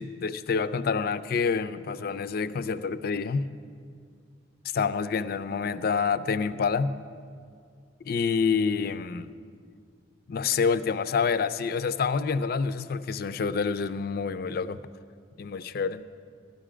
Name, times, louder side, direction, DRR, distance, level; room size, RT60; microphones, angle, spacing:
voice 1, 0.0-3.5 4.7-7.0 8.0-9.3 10.3-14.8 15.4-16.1, left 5 dB, 55° left, 13 dB, 0.4 m, -27 dB
13.0 x 11.0 x 5.0 m, 2.2 s
head